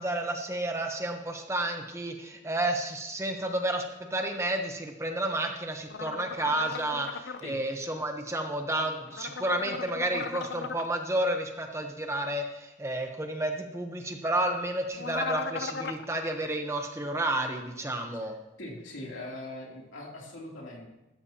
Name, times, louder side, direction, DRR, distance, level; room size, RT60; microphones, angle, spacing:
voice 1, 0.0-3.8 4.1-18.3, right 1 dB, 15° right, 4 dB, 0.9 m, -31 dB
sound 1, 5.9-7.4 9.1-10.9 15.0-16.0, left 4 dB, 60° left, 0.6 m, -37 dB
voice 2, 18.6-20.9, left 1 dB, 85° left, -2 dB, 3.0 m, -41 dB
15.0 x 12.5 x 2.9 m, 0.95 s
head